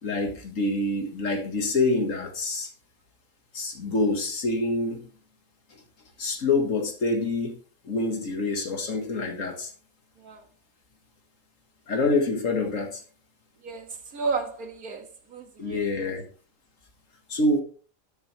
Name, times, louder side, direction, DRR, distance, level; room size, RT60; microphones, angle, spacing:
voice 1, 0.0-2.7 3.5-5.1 6.2-7.6 7.8-9.7 11.9-13.0 15.6-16.2 17.3-17.6, left 2 dB, 65° left, 2.0 m, -26 dB
voice 2, 13.6-16.2, right 4 dB, 90° right, 2.1 m, -33 dB
13.0 x 6.7 x 3.3 m
omnidirectional pair, 1.5 m